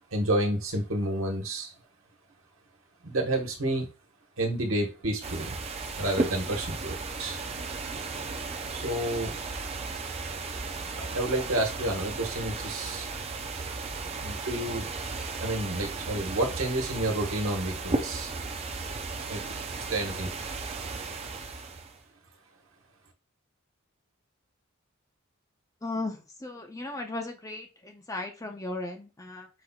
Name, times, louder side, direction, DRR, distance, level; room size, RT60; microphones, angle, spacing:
voice 1, 0.1-1.7 3.0-3.9 4.4-5.6 5.9-7.4 8.7-9.4 11.0-13.1 14.2-14.9 15.4-18.3 19.3-19.4 19.7-20.3, right 1 dB, 70° right, 2 dB, 1.4 m, -30 dB
sound 1, 5.2-22.0, right 3 dB, 30° right, 0.6 m, -35 dB
voice 2, 25.8-29.5, left 2 dB, 15° left, 3 dB, 0.7 m, -36 dB
5.2 x 4.2 x 2.4 m, 0.29 s
head